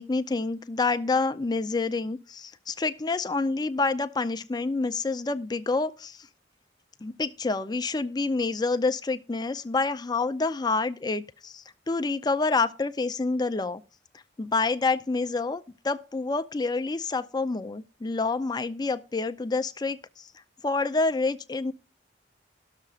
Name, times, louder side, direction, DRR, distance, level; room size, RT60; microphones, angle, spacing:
voice 1, 0.0-6.3 7.0-13.8 14.4-20.3 20.6-21.7, left 3 dB, 25° left, 0.5 m, -28 dB
19.0 x 6.6 x 2.4 m
head